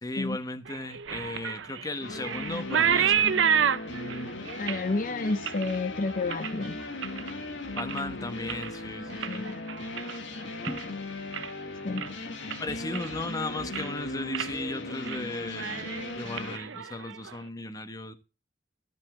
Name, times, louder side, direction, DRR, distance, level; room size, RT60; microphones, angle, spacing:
voice 1, 0.0-3.6 7.8-9.5 10.7-10.9 12.6-18.1, left 2 dB, 20° left, 1.2 m, -36 dB
sound 1, 0.7-7.3 7.7-8.1 8.4-10.9 11.2-11.6 12.0-12.1 12.5-13.3 13.6-14.0 14.3-14.5 14.9-15.2 15.5-17.4, right 8 dB, 90° right, 0.7 m, -30 dB
sound 2, 2.0-16.6, left 2 dB, 75° left, 2.0 m, -38 dB
voice 2, 4.6-6.8 9.3-9.6 11.8-12.1, left 3 dB, 45° left, 0.6 m, -30 dB
13.5 x 5.5 x 7.6 m
head